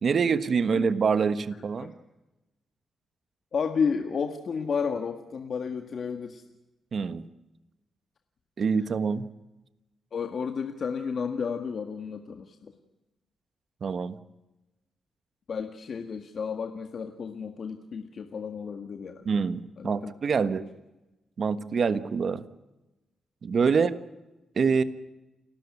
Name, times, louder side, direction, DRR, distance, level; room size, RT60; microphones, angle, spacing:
voice 1, 0.0-1.9 6.9-7.3 8.6-9.3 13.8-14.2 19.2-20.6 21.4-22.4 23.4-23.9 24.5-24.8, right 5 dB, 55° right, 13 dB, 1.4 m, -25 dB
voice 2, 3.5-6.4 10.1-12.7 15.5-19.4 19.8-20.1 21.7-21.8 23.6-23.9, left 6 dB, 60° left, 6 dB, 1.8 m, -32 dB
29.5 x 13.0 x 9.7 m, 1.0 s
cardioid pair, 90°, 0 cm